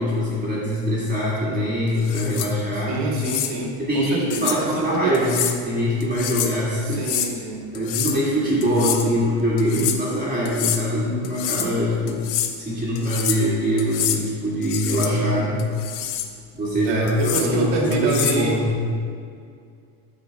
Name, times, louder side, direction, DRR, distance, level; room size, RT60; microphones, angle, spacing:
voice 1, 0.0-3.0 3.8-7.0 7.7-12.3 12.6-15.6 16.5-18.8, equal, 15° right, -9 dB, 1.9 m, -23 dB
sound 1, 2.0-2.5 3.2-3.5 4.3-4.6 5.1-5.6 6.0-6.6 6.9-7.3 7.7-8.2 8.6-9.1 9.6-10.0 10.5-10.8 11.2-11.7 12.1-12.5 13.0-13.5 13.8-14.2 14.6-15.1 15.6-16.3 17.1-17.5 17.9-18.4, left 10 dB, 65° left, 0.9 m, -27 dB
voice 2, 2.7-5.1 6.8-7.6 8.8-9.2 16.8-18.6, right 3 dB, 55° right, -1 dB, 2.2 m, -26 dB
9.0 x 6.7 x 4.7 m, 2.3 s
cardioid pair, 130°, 50 cm